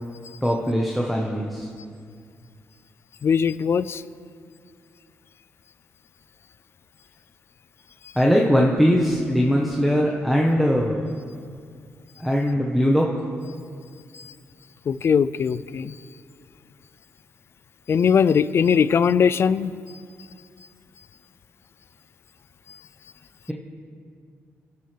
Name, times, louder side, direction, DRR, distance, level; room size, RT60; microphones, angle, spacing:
voice 1, 0.4-1.7 8.1-11.0 12.2-13.1, equal, ahead, -2 dB, 1.2 m, -20 dB
voice 2, 3.2-4.0 14.1-14.3 14.9-16.0 17.9-19.7, left 7 dB, 55° left, 17 dB, 0.4 m, -20 dB
24.0 x 12.0 x 3.4 m, 2.2 s
cardioid pair, 95°, 5 cm